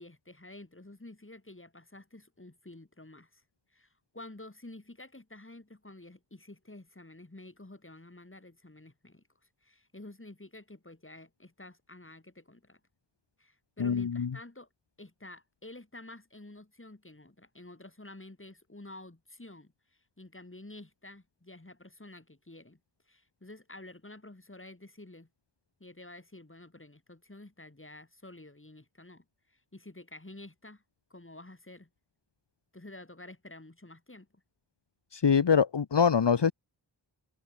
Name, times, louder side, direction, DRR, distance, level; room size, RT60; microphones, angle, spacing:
voice 1, 0.0-3.4 3.7-3.9 4.1-9.2 9.6-12.8 13.4-14.7 15.0-19.7 20.2-22.8 23.1-25.3 25.8-30.8 31.1-31.9 32.7-34.4, left 2 dB, 25° left, 7.8 m, -50 dB
voice 2, 13.8-14.3 35.1-36.5, left 6 dB, 65° left, 1.3 m, -24 dB
wide cardioid pair, 75°, 45 cm